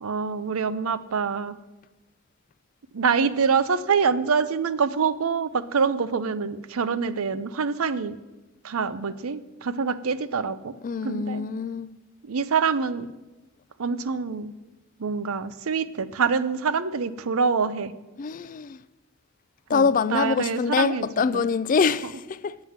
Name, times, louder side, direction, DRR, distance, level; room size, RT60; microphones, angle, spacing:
voice 1, 0.0-1.6 2.9-8.2 8.6-10.7 11.0-11.5 12.3-13.1 13.8-14.5 15.0-17.9 19.7-21.0 21.3-21.5, right 5 dB, 85° right, 0.6 m, -25 dB
voice 2, 10.8-11.9 18.2-18.8 19.7-22.6, left 5 dB, 40° left, 0.3 m, -24 dB
9.5 x 7.5 x 7.3 m
head